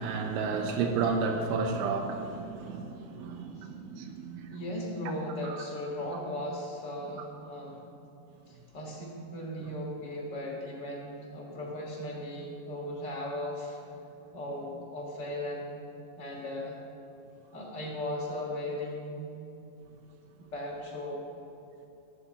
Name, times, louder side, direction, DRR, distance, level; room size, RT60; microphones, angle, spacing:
voice 1, 0.0-4.6 5.4-5.6, right 4 dB, 90° right, 3 dB, 3.3 m, -32 dB
voice 2, 4.5-7.9 8.5-13.8 14.3-15.9 16.2-16.8 17.5-19.3 20.4-21.3, left 1 dB, 30° left, -3 dB, 2.8 m, -37 dB
16.0 x 7.3 x 8.2 m, 2.8 s
omnidirectional pair, 5.3 m